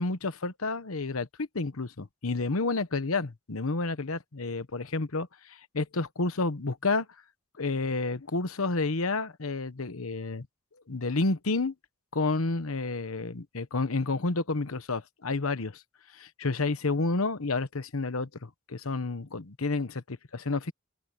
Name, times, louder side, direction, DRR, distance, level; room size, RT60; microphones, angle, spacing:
voice 1, 0.0-7.1 7.6-10.5 10.9-11.7 12.1-15.8 16.1-20.7, left 3 dB, 85° left, 1.1 m, -30 dB
open air
head